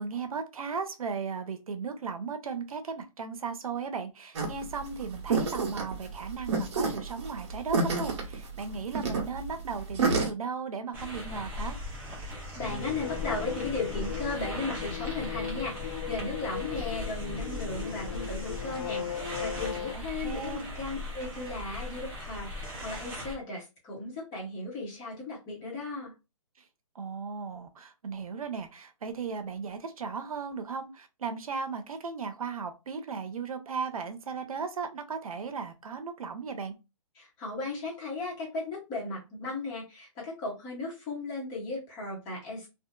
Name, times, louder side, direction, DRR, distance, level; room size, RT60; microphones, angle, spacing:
voice 1, 0.0-11.8 19.9-20.7 27.0-36.7, right 5 dB, 90° right, 0.6 m, -36 dB
sound 1, 4.3-10.3, right 4 dB, 55° right, 0.9 m, -29 dB
sound 2, 10.9-23.4, left 1 dB, 10° right, 0.6 m, -39 dB
voice 2, 12.2-26.1 37.1-42.7, left 3 dB, 20° left, 1.1 m, -36 dB
sound 3, 12.6-19.9, left 9 dB, 45° left, 0.6 m, -37 dB
2.7 x 2.4 x 2.3 m
hypercardioid pair, 155°, 18 cm